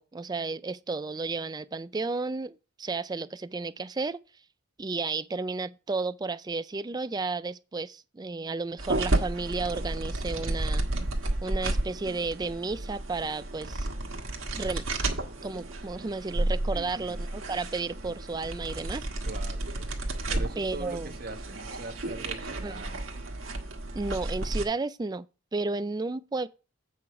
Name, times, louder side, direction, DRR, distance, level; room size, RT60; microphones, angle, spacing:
voice 1, 0.0-4.2 4.8-10.8 11.4-13.9 14.5-14.9 15.4-19.1 20.6-21.1 22.6-22.8 23.9-25.3 25.5-26.5, right 3 dB, 20° right, 0.3 m, -33 dB
sound 1, 8.8-24.6, right 2 dB, 65° right, 1.5 m, -32 dB
voice 2, 16.7-17.2 19.2-19.9 20.3-23.1, right 3 dB, 45° right, 1.3 m, -42 dB
8.5 x 4.8 x 5.8 m
head